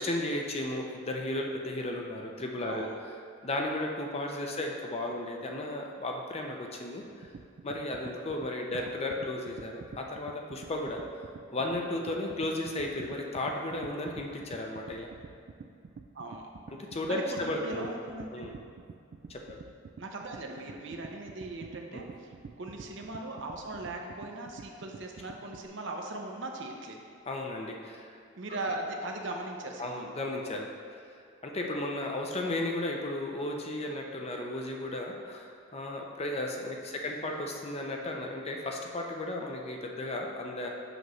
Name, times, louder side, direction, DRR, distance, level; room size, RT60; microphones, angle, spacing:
voice 1, 0.0-2.9 3.4-7.3 7.6-11.0 11.5-15.1 16.7-17.9 18.3-18.5 19.3-19.6 21.9-22.1 27.3-28.2 29.8-31.0 31.4-40.7, left 1 dB, 30° left, 1 dB, 0.6 m, -34 dB
voice 2, 2.6-3.0 5.0-5.1 8.7-8.9 16.1-16.5 17.1-18.5 20.0-27.0 28.4-30.2 37.2-37.4, right 2 dB, 65° right, 1 dB, 0.8 m, -39 dB
sound 1, 7.0-25.7, right 5 dB, 50° right, 0.3 m, -48 dB
7.8 x 3.1 x 6.2 m, 2.4 s
head